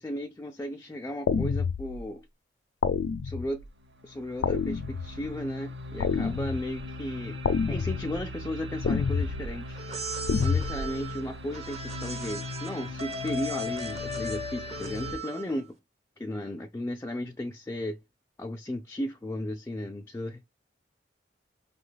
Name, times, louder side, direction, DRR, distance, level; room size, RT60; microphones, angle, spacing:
voice 1, 0.0-2.3 3.2-3.6 4.0-7.4 7.7-9.8 10.4-15.7 16.2-18.0 18.4-20.4, left 1 dB, 15° left, 0.3 m, -35 dB
sound 1, 1.3-2.0 2.8-3.6 4.4-5.3 6.0-6.8 7.4-8.2 8.8-9.5 10.3-10.9, left 5 dB, 85° left, 0.3 m, -28 dB
sound 2, 3.1-3.2 3.8-15.1, left 2 dB, 70° right, 0.6 m, -40 dB
sound 3, 9.7-15.6, equal, 40° right, 0.8 m, -37 dB
5.4 x 2.2 x 3.2 m
head